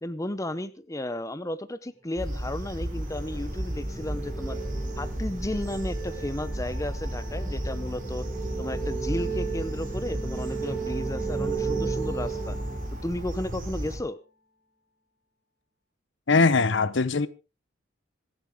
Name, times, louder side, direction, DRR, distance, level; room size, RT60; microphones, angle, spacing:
voice 1, 0.0-4.6 5.0-8.3 8.6-12.6 13.0-14.2, left 1 dB, 15° left, 0.7 m, -33 dB
sound 1, 2.2-14.0, equal, 40° right, 5.7 m, -33 dB
sound 2, 3.0-13.5, right 5 dB, 15° right, 7.2 m, -35 dB
voice 2, 16.3-17.3, left 4 dB, 60° left, 0.8 m, -21 dB
26.0 x 8.9 x 3.6 m
head